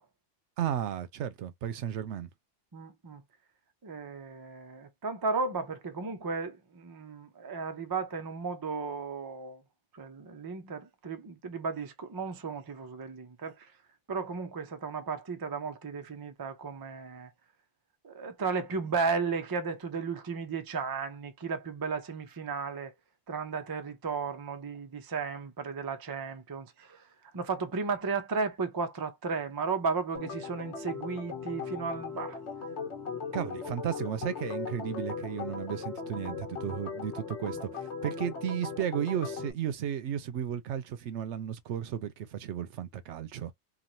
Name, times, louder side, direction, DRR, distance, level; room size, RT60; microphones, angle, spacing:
voice 1, 0.6-2.3 33.3-43.5, right 9 dB, 80° right, 0.9 m, -34 dB
voice 2, 2.7-3.2 3.8-9.6 9.9-13.7 14.1-17.3 18.0-22.9 23.3-32.4, right 4 dB, 35° right, 0.3 m, -34 dB
Organ, 30.1-39.5, left 5 dB, 75° left, 1.3 m, -38 dB
3.0 x 2.4 x 2.5 m
omnidirectional pair, 1.2 m